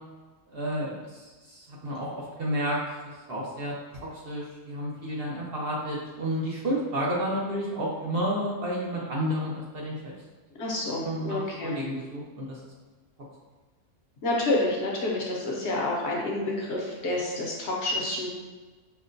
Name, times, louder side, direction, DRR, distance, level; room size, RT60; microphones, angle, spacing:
voice 1, 0.5-2.8 3.3-3.7 4.2-10.1 11.0-12.6, equal, 55° right, -4 dB, 0.8 m, -31 dB
voice 2, 10.6-11.7 14.2-18.3, left 2 dB, 60° left, -2 dB, 0.9 m, -28 dB
5.6 x 2.1 x 2.5 m, 1.3 s
omnidirectional pair, 1.4 m